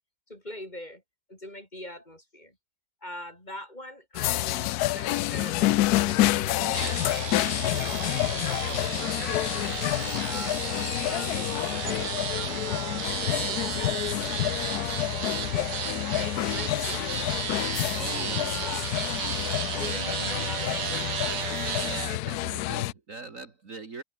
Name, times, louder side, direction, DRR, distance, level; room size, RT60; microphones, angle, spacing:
voice 1, 0.3-1.0 1.3-2.6 3.0-7.1 7.6-8.1 8.4-9.8 10.2-13.9 15.5-17.0 17.6-18.9 19.8-20.9, left 1 dB, 20° left, 6.1 m, -42 dB
sound 1, 4.1-22.9, left 16 dB, 70° left, 0.9 m, -28 dB
sound 2, 5.5-20.6, left 4 dB, 50° left, 3.5 m, -45 dB
sound 3, 6.7-22.1, right 9 dB, 70° right, 1.9 m, -34 dB
voice 2, 17.9-18.5 21.8-24.0, right 3 dB, 45° right, 2.3 m, -40 dB
omnidirectional pair, 2.0 m